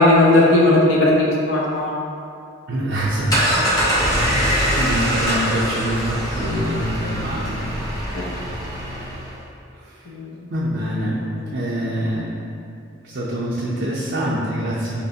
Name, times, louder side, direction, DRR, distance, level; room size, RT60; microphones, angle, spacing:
voice 1, 0.0-2.0 8.1-8.2 10.1-10.3 11.2-11.6, left 2 dB, 85° left, -4 dB, 0.7 m, -17 dB
voice 2, 2.7-3.7 4.3-7.8 9.8-10.0 10.5-11.2 11.5-12.4 13.0-15.0, right 1 dB, 60° right, -8 dB, 0.5 m, -25 dB
sound 1, 3.1-9.4, equal, 20° left, 0.7 m, -23 dB
4.1 x 3.0 x 2.7 m, 2.5 s
head